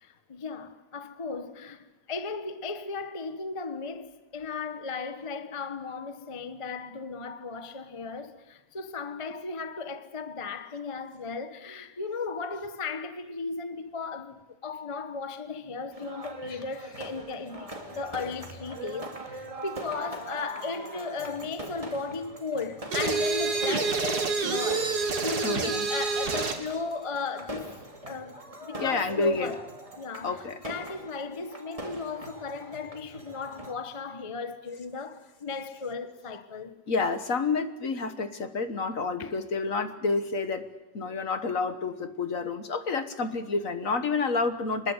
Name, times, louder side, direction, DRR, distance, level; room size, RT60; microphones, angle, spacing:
voice 1, 0.0-27.7 28.1-29.6 30.0-36.8 39.2-39.3, left 4 dB, 20° left, 1.0 m, -36 dB
sound 1, 15.9-33.7, right 1 dB, 20° right, 2.5 m, -42 dB
sound 2, 22.9-26.7, right 4 dB, 60° right, 2.4 m, -27 dB
voice 2, 25.4-25.9 28.8-29.5 30.2-30.6 36.9-40.6 40.9-44.9, left 4 dB, 50° left, 1.6 m, -29 dB
24.5 x 20.5 x 8.1 m
omnidirectional pair, 1.9 m